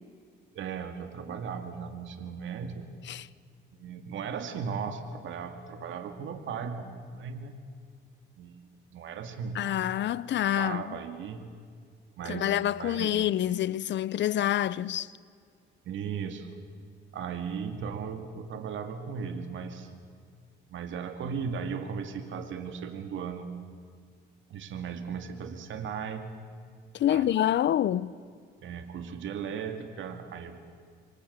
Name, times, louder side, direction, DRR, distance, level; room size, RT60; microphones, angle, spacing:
voice 1, 0.5-2.9 3.8-7.5 8.4-8.6 8.9-9.6 10.6-11.4 12.2-13.1 15.8-16.6 17.1-19.9 20.7-23.5 24.5-26.3 27.1-27.5 28.6-30.6, right 6 dB, 75° right, 2.2 m, -37 dB
voice 2, 9.5-11.0 12.3-15.1 26.9-28.1, left 11 dB, 65° left, 0.7 m, -27 dB
27.5 x 23.5 x 8.1 m
cardioid pair, 90°, 20 cm